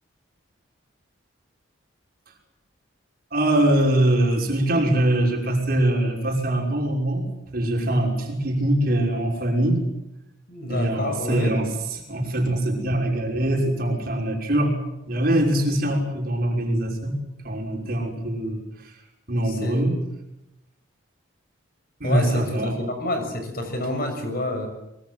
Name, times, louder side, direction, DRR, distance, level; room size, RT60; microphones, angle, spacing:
voice 1, 3.3-7.2 7.5-9.8 10.7-14.8 15.0-17.2 17.4-19.0 19.3-20.0 22.0-22.8, right 1 dB, 50° right, 1 dB, 5.9 m, -23 dB
voice 2, 10.5-11.6 19.4-19.8 22.0-24.7, left 1 dB, 50° left, 6 dB, 6.5 m, -28 dB
25.0 x 23.0 x 7.7 m, 0.87 s
head